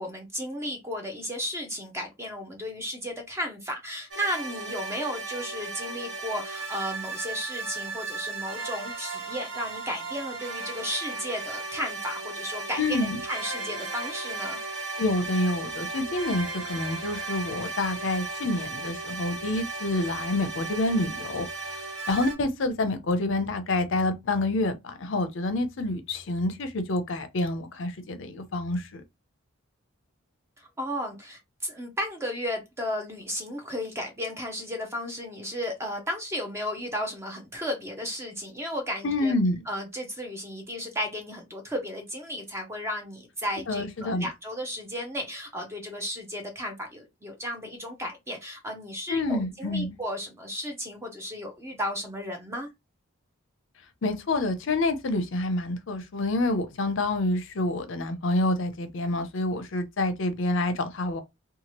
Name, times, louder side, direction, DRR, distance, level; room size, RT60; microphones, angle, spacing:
voice 1, 0.0-14.6 30.6-39.3 39.7-52.7, equal, 10° right, 0.6 m, -34 dB
sound 1, 4.1-22.4, right 3 dB, 65° right, 1.3 m, -35 dB
voice 2, 12.8-13.2 15.0-21.5 22.1-29.0 39.0-39.6 43.7-44.3 49.1-50.0 54.0-61.2, left 2 dB, 60° left, 0.5 m, -27 dB
2.8 x 2.3 x 2.9 m
head